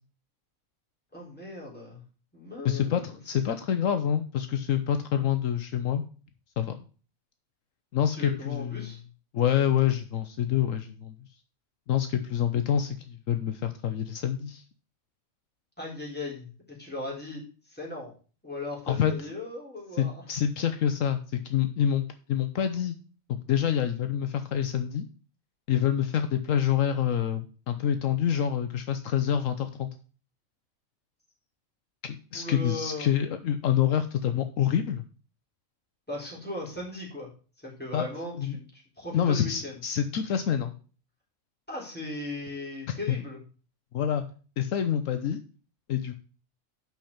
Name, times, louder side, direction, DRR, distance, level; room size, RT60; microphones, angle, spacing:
voice 1, 1.1-2.0 2.3-3.2 8.1-9.0 15.8-18.1 18.4-20.2 32.3-33.1 36.1-37.3 37.6-39.8 41.7-43.4, left 2 dB, 5° left, -5 dB, 3.6 m, -38 dB
voice 2, 2.6-6.0 6.6-6.8 7.9-8.9 9.3-11.1 11.9-14.6 18.9-19.1 20.0-22.9 23.3-25.1 25.7-29.9 32.0-35.0 37.9-38.1 38.4-38.6 39.1-40.7 43.1-43.2 43.9-44.2 44.6-45.4 45.9-46.1, left 9 dB, 75° left, 8 dB, 1.1 m, -27 dB
6.0 x 5.8 x 7.1 m, 0.38 s
omnidirectional pair, 1.4 m